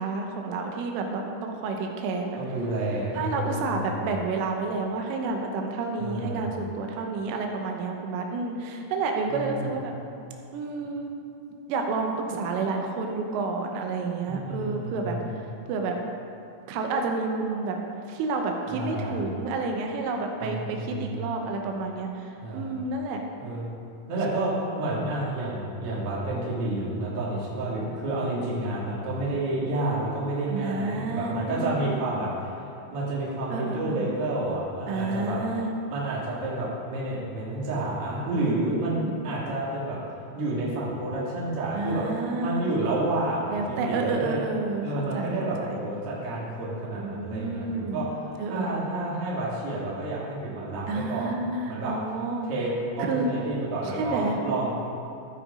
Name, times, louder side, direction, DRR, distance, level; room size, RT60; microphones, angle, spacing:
voice 1, 0.0-2.4 3.1-9.9 10.5-11.1 11.7-15.2 15.7-16.0 16.7-17.8 18.1-23.2 29.0-29.1 30.5-32.0 33.5-34.0 34.9-35.7 38.3-39.2 41.7-42.8 43.5-45.7 46.9-48.0 48.4-48.8 50.9-52.5 53.0-53.3 53.9-54.4, right 3 dB, 85° right, 2 dB, 3.3 m, -30 dB
voice 2, 2.4-4.1 6.0-6.6 9.3-9.7 14.2-15.4 18.7-19.3 20.4-21.3 22.4-22.8 23.4-23.7 24.1-35.4 35.9-40.0 40.3-42.0 42.4-44.4 44.8-48.1 48.5-51.3 51.6-51.9 52.4-54.7, right 2 dB, 50° right, -6 dB, 1.7 m, -30 dB
14.5 x 5.0 x 4.9 m, 2.6 s
omnidirectional pair, 5.7 m